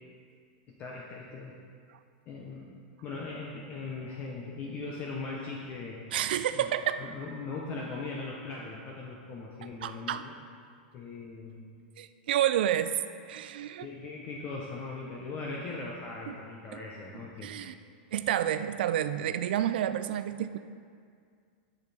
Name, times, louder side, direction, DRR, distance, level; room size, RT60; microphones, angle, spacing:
voice 1, 0.7-1.6 2.3-2.7 3.0-6.0 6.5-6.7 7.0-10.3 10.9-11.7 13.8-17.6, left 3 dB, 30° left, -2 dB, 0.9 m, -39 dB
voice 2, 6.1-7.0 9.8-10.2 12.0-12.9 13.3-13.9 16.3-16.4 16.7-16.8 17.4-17.7 18.1-20.6, right 11 dB, 75° right, 11 dB, 0.4 m, -29 dB
9.7 x 6.5 x 4.2 m, 2.2 s
supercardioid pair, 155°, 5 cm